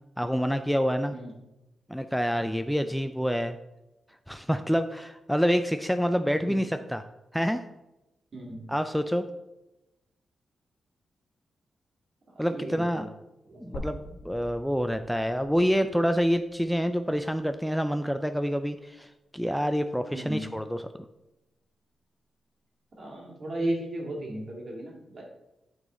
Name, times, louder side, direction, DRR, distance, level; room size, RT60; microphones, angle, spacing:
voice 1, 0.2-1.1 1.9-3.5 4.3-7.0 7.3-7.6 8.7-9.2 12.4-13.1 13.6-20.8, equal, ahead, 9 dB, 0.3 m, -27 dB
voice 2, 8.3-8.7 12.4-13.1 13.5-13.9 20.1-20.5 23.0-25.2, right 1 dB, 50° right, -1 dB, 1.9 m, -35 dB
sound 1, 13.7-17.9 18.3-18.4 19.8-19.9, left 1 dB, 85° left, 1.4 m, -45 dB
8.9 x 4.0 x 3.7 m, 0.98 s
cardioid pair, 80°, 0 cm